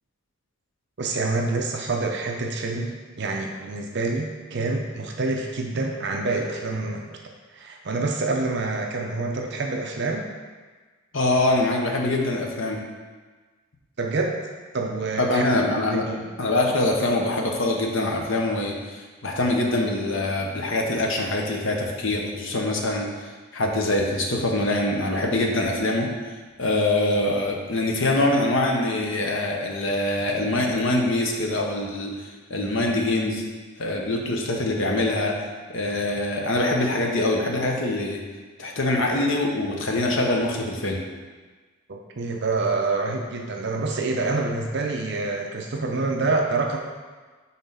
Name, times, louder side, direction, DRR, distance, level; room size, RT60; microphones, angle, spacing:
voice 1, 1.0-7.2 7.5-10.3 14.0-14.3 14.7-15.5 15.9-16.3 41.9-46.8, right 3 dB, 50° right, 1 dB, 0.6 m, -27 dB
voice 2, 11.1-12.8 15.2-16.1 16.4-23.1 23.5-26.1 26.6-32.1 32.5-33.4 33.8-35.4 35.7-38.2 38.6-41.0, left 2 dB, 60° left, 0 dB, 0.9 m, -24 dB
5.8 x 3.9 x 5.6 m, 1.4 s
head